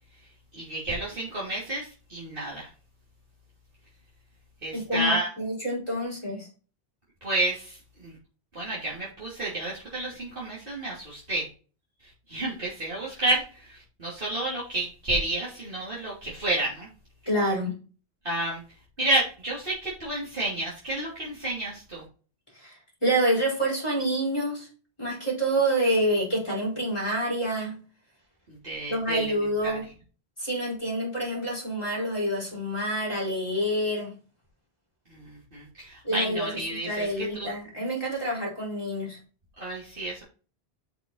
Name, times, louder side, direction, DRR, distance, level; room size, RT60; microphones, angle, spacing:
voice 1, 0.5-2.7 4.6-5.3 7.2-8.2 8.5-11.5 12.3-16.9 18.2-18.6 19.0-22.0 28.5-29.3 29.6-29.8 35.1-37.5 39.6-40.2, right 1 dB, 60° right, -7 dB, 3.4 m, -30 dB
voice 2, 4.7-6.5 17.3-17.7 22.5-24.7 25.0-27.8 28.9-29.8 30.4-34.1 36.0-36.5 36.8-39.2, right 1 dB, 25° left, -3 dB, 4.5 m, -27 dB
7.9 x 6.3 x 4.0 m, 0.37 s
omnidirectional pair, 1.1 m